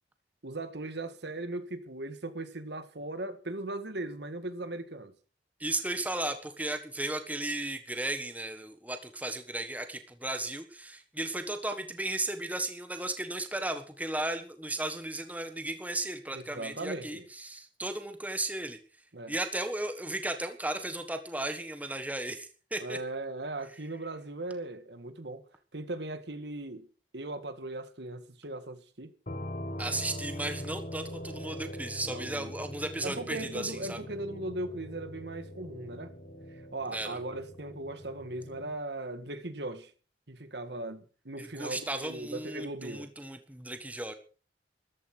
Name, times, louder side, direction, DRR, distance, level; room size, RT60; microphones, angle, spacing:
voice 1, 0.4-5.1 16.3-17.3 19.1-19.3 22.8-25.4 25.7-26.9 27.1-29.1 32.0-32.7 33.0-36.1 36.7-39.9 40.3-43.1, right 2 dB, 65° right, 1.8 m, -38 dB
voice 2, 5.6-18.8 19.3-23.0 29.8-34.0 36.9-37.2 41.4-44.1, right 1 dB, 10° right, 1.5 m, -35 dB
sound 1, 29.3-38.8, equal, 40° left, 1.5 m, -42 dB
14.0 x 13.0 x 6.1 m
head